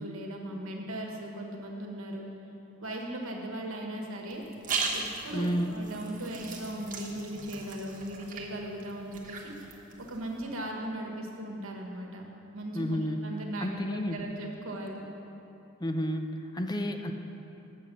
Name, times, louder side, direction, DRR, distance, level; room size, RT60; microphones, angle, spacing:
voice 1, 0.0-2.2 2.8-12.2 12.5-15.0, right 1 dB, 80° right, 1 dB, 1.3 m, -38 dB
sound 1, 4.3-10.4, right 4 dB, 40° right, 1.1 m, -38 dB
voice 2, 5.3-5.8 12.7-13.3 13.6-14.2 15.8-17.1, equal, 20° left, 6 dB, 0.4 m, -31 dB
8.3 x 7.3 x 6.0 m, 2.9 s
head